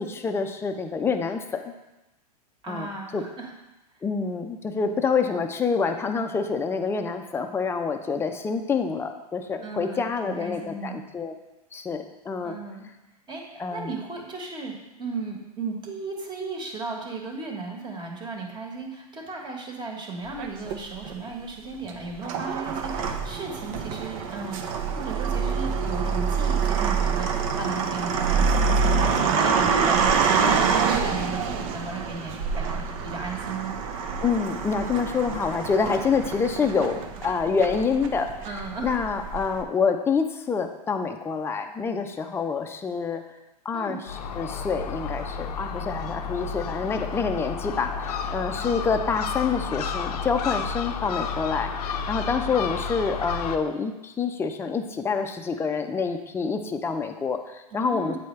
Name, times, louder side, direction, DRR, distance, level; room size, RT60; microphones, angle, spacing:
voice 1, 0.0-1.7 2.7-3.2 4.0-11.3 11.7-12.6 13.6-13.9 34.2-38.3 38.8-43.2 43.6-58.2, left 5 dB, 10° left, 5 dB, 0.5 m, -27 dB
voice 2, 2.6-3.5 9.6-11.1 12.4-12.9 13.3-14.7 15.0-33.8 38.4-39.0 43.7-44.0 57.7-58.2, right 3 dB, 20° right, 1 dB, 1.3 m, -35 dB
sound 1, 20.4-21.1 21.8-39.6, right 5 dB, 55° right, 0.7 m, -26 dB
Gull seagull, 44.1-53.6, left 5 dB, 75° left, 0.6 m, -31 dB
8.3 x 4.4 x 3.2 m, 0.99 s
hypercardioid pair, 115°, 20 cm